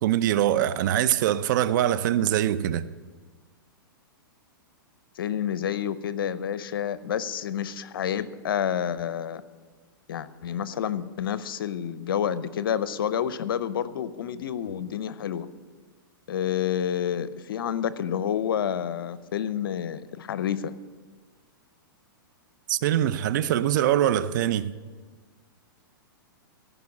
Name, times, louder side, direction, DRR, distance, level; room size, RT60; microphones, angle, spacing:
voice 1, 0.0-2.9 22.7-24.7, right 11 dB, 55° right, 0.6 m, -23 dB
voice 2, 5.2-9.4 10.1-15.5 16.3-20.7, left 9 dB, 75° left, 0.7 m, -29 dB
15.0 x 5.5 x 8.4 m
hypercardioid pair, 135°, 12 cm